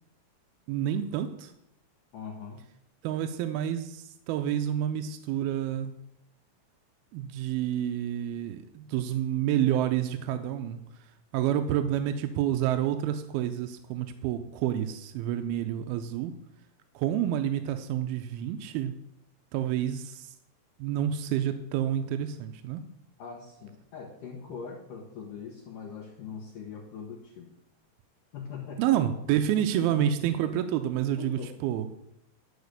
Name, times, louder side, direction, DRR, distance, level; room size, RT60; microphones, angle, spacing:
voice 1, 0.7-1.5 3.0-5.9 7.1-10.8 11.3-16.3 17.0-18.9 19.5-20.3 20.8-22.8 28.8-31.9, right 11 dB, 80° right, 8 dB, 2.2 m, -29 dB
voice 2, 2.1-2.6 23.2-27.6 28.3-28.8 29.8-30.1 31.2-31.5, left 6 dB, 65° left, -3 dB, 2.4 m, -41 dB
12.0 x 4.9 x 6.6 m, 0.80 s
omnidirectional pair, 4.9 m